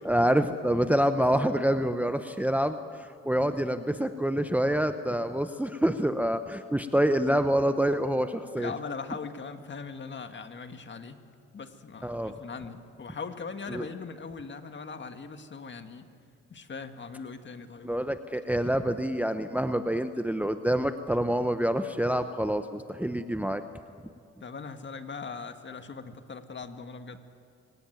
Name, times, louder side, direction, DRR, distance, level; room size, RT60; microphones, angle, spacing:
voice 1, 0.1-8.7 12.0-12.3 13.7-13.9 17.8-23.6, right 1 dB, 5° right, 9 dB, 0.9 m, -27 dB
voice 2, 8.6-11.2 11.5-16.1 16.5-18.1 24.4-27.2, left 5 dB, 40° left, 7 dB, 1.8 m, -40 dB
25.0 x 18.0 x 9.3 m, 2.4 s
cardioid pair, 90°, 30 cm